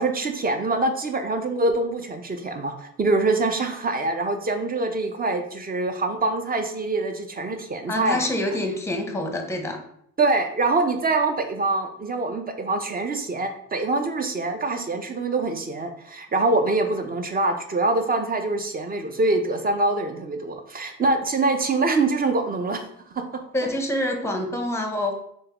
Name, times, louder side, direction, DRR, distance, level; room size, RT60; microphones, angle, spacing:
voice 1, 0.0-8.3 10.2-22.8 23.1-23.4, right 3 dB, 30° right, 6 dB, 0.6 m, -24 dB
voice 2, 7.9-9.8 23.5-25.1, left 1 dB, 10° left, 4 dB, 0.7 m, -26 dB
3.7 x 3.1 x 2.9 m, 0.69 s
cardioid pair, 90°, 30 cm